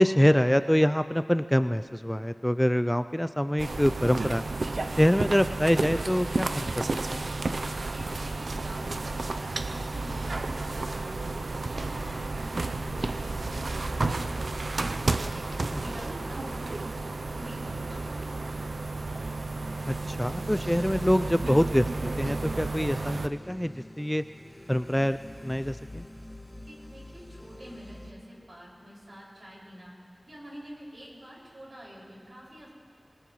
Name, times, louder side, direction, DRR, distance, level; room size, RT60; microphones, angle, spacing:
voice 1, 0.0-4.4 5.0-7.3 15.7-15.8 19.9-24.2 24.7-26.1, equal, 5° left, 11 dB, 0.3 m, -25 dB
sound 1, 3.6-23.3, right 3 dB, 85° right, 0.5 m, -32 dB
voice 2, 7.8-11.3 11.7-14.9 15.3-16.9 17.2-18.7 26.5-30.0 30.2-32.7, equal, 65° right, -5 dB, 5.7 m, -46 dB
sound 2, 14.3-28.1, left 1 dB, 25° left, 1.4 m, -47 dB
25.0 x 18.0 x 3.1 m, 2.1 s
wide cardioid pair, 50°, 0 cm